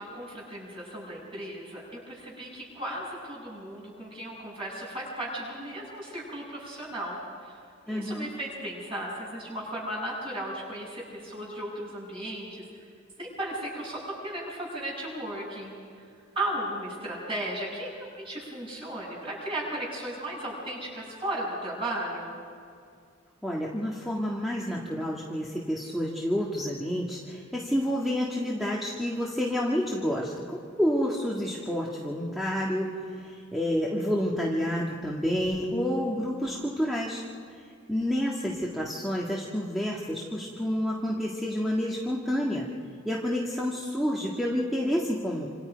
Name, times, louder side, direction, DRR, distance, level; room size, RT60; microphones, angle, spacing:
voice 1, 0.0-7.6 7.9-12.6 13.2-15.7 16.3-22.4, right 1 dB, 25° right, -4 dB, 7.8 m, -35 dB
voice 2, 7.9-8.3 23.4-37.2 37.9-42.7 43.1-45.5, equal, ahead, -4 dB, 1.8 m, -29 dB
28.0 x 27.5 x 5.2 m, 2.3 s
head